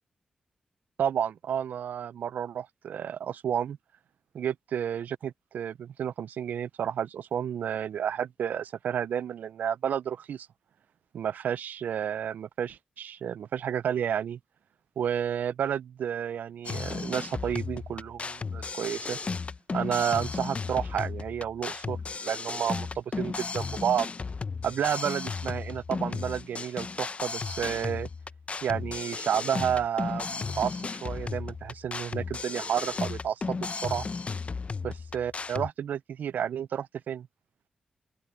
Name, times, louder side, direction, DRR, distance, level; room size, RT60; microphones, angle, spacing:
voice 1, 1.0-3.8 4.3-10.5 11.1-14.4 15.0-19.2 19.7-24.1 24.6-28.1 28.6-34.1 34.8-37.3, right 9 dB, 80° right, 0.4 m, -31 dB
sound 1, 16.6-35.7, left 4 dB, 45° left, 0.8 m, -35 dB
open air
cardioid pair, 50°, 3 cm